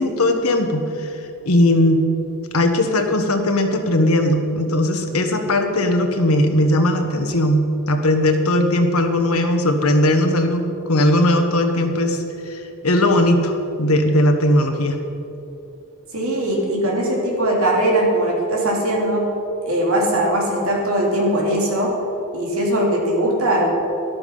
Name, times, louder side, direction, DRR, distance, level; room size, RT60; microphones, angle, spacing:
voice 1, 0.0-2.0 2.5-12.6 12.8-15.0, left 1 dB, 75° left, 5 dB, 1.4 m, -18 dB
voice 2, 16.1-19.2 19.6-21.9 22.3-23.7, right 1 dB, 70° right, -2 dB, 3.1 m, -20 dB
13.0 x 12.0 x 5.6 m, 2.8 s
head